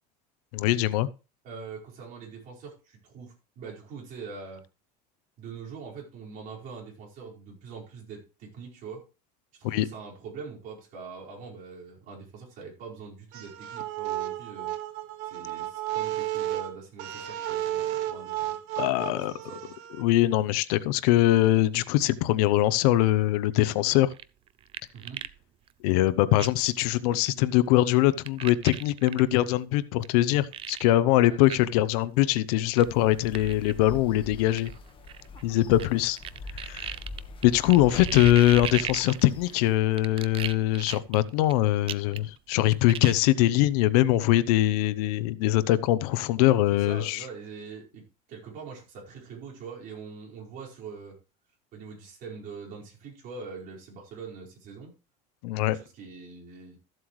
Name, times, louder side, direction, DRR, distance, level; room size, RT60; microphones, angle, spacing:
voice 1, 0.5-1.1 9.6-9.9 18.8-19.3 20.0-24.1 25.8-34.7 35.4-36.2 36.5-37.0 37.4-47.2 55.4-55.8, left 15 dB, 80° left, 0.8 m, -22 dB
voice 2, 1.4-4.6 5.4-9.0 9.5-14.7 15.3-18.6 19.1-19.7 24.9-25.3 31.3-31.4 35.8-35.9 46.7-48.0 48.3-51.2 51.7-54.9 55.7-56.8, right 5 dB, 45° right, 4.8 m, -43 dB
sound 1, 13.3-20.0, right 13 dB, 70° right, 1.5 m, -33 dB
sound 2, 24.1-25.4 25.7-25.8 26.4-26.7 27.2-27.3 28.3-29.2 30.0-30.1 30.5-30.8 31.4-31.6 31.9-32.0 32.7-32.8 33.3-33.7 34.6-35.9 36.2-39.5 40.0-41.5 41.9-42.4 42.6-43.1, right 11 dB, 30° right, 0.4 m, -37 dB
sound 3, 32.8-39.8, left 2 dB, 25° left, 1.3 m, -41 dB
14.0 x 7.7 x 3.1 m
cardioid pair, 150°, 19 cm